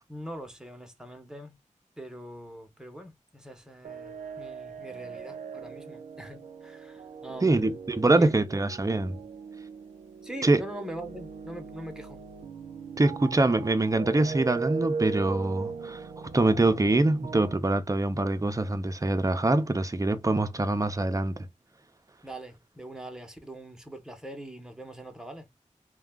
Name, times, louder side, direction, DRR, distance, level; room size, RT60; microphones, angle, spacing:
voice 1, 0.1-1.6 2.0-8.3 9.2-9.3 10.2-12.2 22.2-25.5, right 1 dB, 5° right, 0.8 m, -42 dB
sound 1, 3.8-17.6, right 5 dB, 80° right, 0.4 m, -39 dB
voice 2, 7.4-9.2 10.4-10.6 13.0-21.5, right 2 dB, 25° right, 0.5 m, -24 dB
2.3 x 2.2 x 3.4 m
wide cardioid pair, 55°, 13 cm